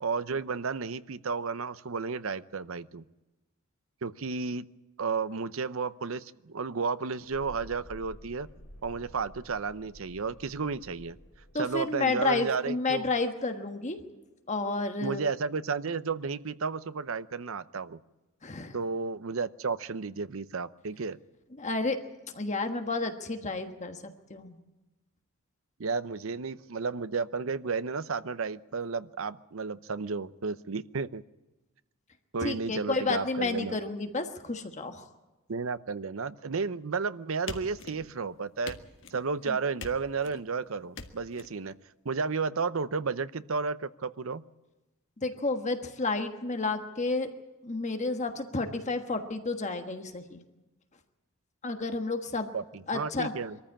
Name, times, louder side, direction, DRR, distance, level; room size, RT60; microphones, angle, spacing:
voice 1, 0.0-3.0 4.0-4.6 5.0-8.5 8.8-11.2 11.6-13.1 15.0-18.0 18.7-21.2 25.8-31.2 32.3-33.8 35.5-38.8 39.1-41.8 42.0-44.4 52.5-53.6, right 4 dB, 70° right, 15 dB, 0.7 m, -32 dB
Thunderstorm, 7.3-14.7, equal, 80° left, 4.0 m, -52 dB
voice 2, 11.5-14.0 14.5-15.3 18.4-18.8 21.5-22.0 22.3-24.6 32.4-35.1 39.5-39.6 45.2-47.3 47.6-50.4 51.6-52.5 52.9-53.3, left 3 dB, 35° left, 6 dB, 1.4 m, -31 dB
sound 1, 37.5-38.2 38.6-39.3 39.8-40.4 40.9-41.5, left 4 dB, 60° left, 1.7 m, -43 dB
23.0 x 14.0 x 8.7 m, 1.1 s
head